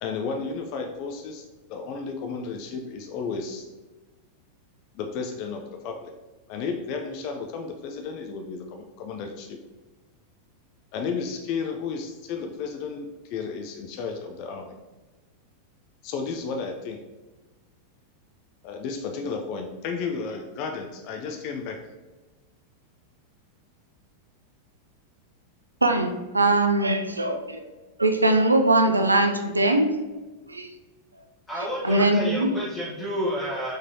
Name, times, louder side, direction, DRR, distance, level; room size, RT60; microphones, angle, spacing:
voice 1, 0.0-3.6 4.9-6.1 6.5-9.6 10.9-14.7 16.0-17.0 18.6-21.8, left 5 dB, 45° left, 4 dB, 0.3 m, -33 dB
voice 2, 25.8-27.6 28.0-29.9 30.5-30.7 31.8-32.6, right 2 dB, 80° right, 6 dB, 0.3 m, -21 dB
voice 3, 31.5-33.7, equal, 20° left, -8 dB, 1.0 m, -30 dB
3.6 x 3.2 x 2.7 m, 1.2 s
figure-of-eight pair, 90°, 0 cm